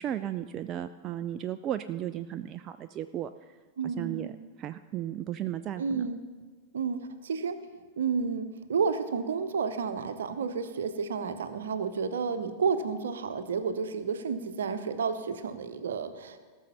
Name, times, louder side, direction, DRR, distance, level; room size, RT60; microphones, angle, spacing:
voice 1, 0.0-3.3 4.0-4.3 4.6-6.1, right 11 dB, 30° right, 10 dB, 0.3 m, -34 dB
voice 2, 3.8-4.3 5.8-6.2 6.7-7.6 8.0-16.4, right 5 dB, 65° right, 10 dB, 0.8 m, -31 dB
17.5 x 6.4 x 5.6 m, 1.4 s
figure-of-eight pair, 90°, 0 cm